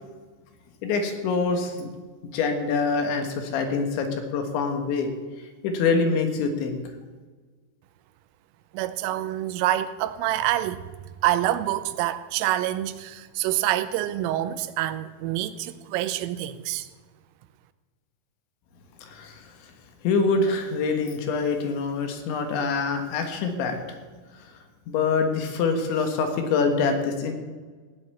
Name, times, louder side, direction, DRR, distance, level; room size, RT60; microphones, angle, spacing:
voice 1, 0.8-1.9 2.3-5.1 5.6-6.8 19.0-19.4 20.0-23.8 24.9-27.3, left 4 dB, 70° left, 3.7 m, -25 dB
voice 2, 8.7-10.8 11.2-16.9, right 13 dB, 90° right, 3.3 m, -26 dB
16.5 x 7.2 x 9.7 m
omnidirectional pair, 5.7 m